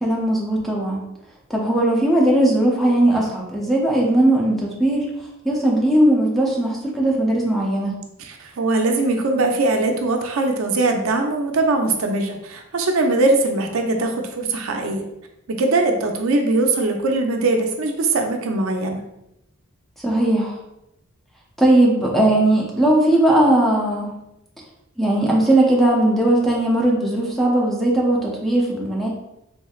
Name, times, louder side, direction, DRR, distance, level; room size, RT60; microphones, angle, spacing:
voice 1, 0.0-1.0 1.5-5.1 5.4-7.9 20.0-20.6 21.6-24.1 25.0-29.1, right 1 dB, ahead, -3 dB, 0.5 m, -18 dB
voice 2, 8.2-15.0 15.5-19.0, right 2 dB, 75° right, 3 dB, 0.5 m, -21 dB
3.4 x 3.1 x 2.3 m, 0.85 s
head